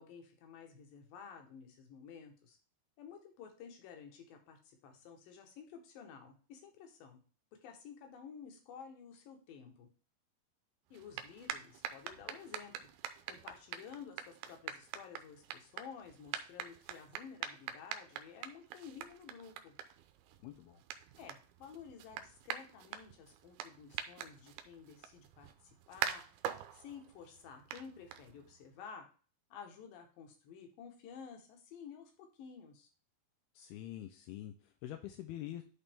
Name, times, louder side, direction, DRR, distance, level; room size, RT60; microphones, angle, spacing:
voice 1, 0.0-2.6 3.0-7.2 7.6-9.9 10.9-12.9 13.3-19.8 21.2-26.2 26.7-29.1 29.5-32.9, left 6 dB, 65° left, 4 dB, 2.6 m, -52 dB
sound 1, 10.9-28.7, right 10 dB, 85° right, 2.3 m, -45 dB
voice 2, 20.4-20.8 33.5-35.6, left 13 dB, 80° left, 5 dB, 2.3 m, -45 dB
11.5 x 4.2 x 3.5 m, 0.38 s
omnidirectional pair, 5.0 m